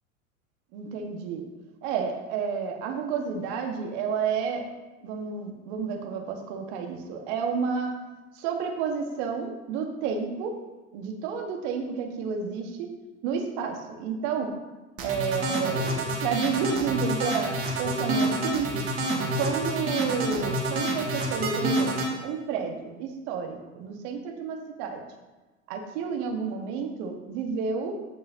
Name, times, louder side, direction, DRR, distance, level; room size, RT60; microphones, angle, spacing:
voice 1, 0.7-1.4 1.8-4.7 5.0-8.0 8.3-10.5 10.9-12.9 13.2-14.5 15.0-15.9 16.2-18.9 19.3-25.0 25.7-28.0, right 6 dB, 55° right, 4 dB, 1.7 m, -30 dB
sound 1, 15.0-22.1, right 1 dB, 35° right, 2.4 m, -27 dB
16.5 x 5.5 x 2.9 m, 1.2 s
hypercardioid pair, 85°, 40 cm